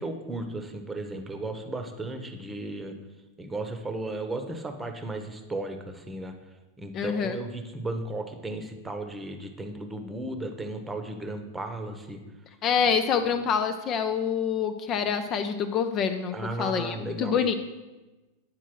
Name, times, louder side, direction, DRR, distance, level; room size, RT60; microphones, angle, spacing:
voice 1, 0.0-3.0 3.4-6.3 6.8-12.2 13.3-13.4 16.3-17.5, right 2 dB, 10° right, 6 dB, 0.9 m, -35 dB
voice 2, 6.9-7.4 12.6-17.5, left 7 dB, 35° left, 8 dB, 0.5 m, -26 dB
8.6 x 4.4 x 5.9 m, 1.1 s
figure-of-eight pair, 90°, 0 cm